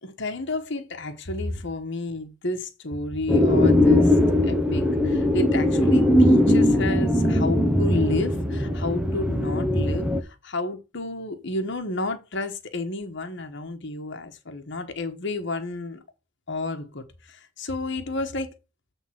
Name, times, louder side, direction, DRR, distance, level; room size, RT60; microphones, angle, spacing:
voice 1, 0.0-4.2 4.4-16.0 16.5-18.5, left 2 dB, 60° left, 1.2 m, -31 dB
sound 1, 3.3-10.2, left 1 dB, 5° right, 0.7 m, -20 dB
8.0 x 3.6 x 5.7 m
head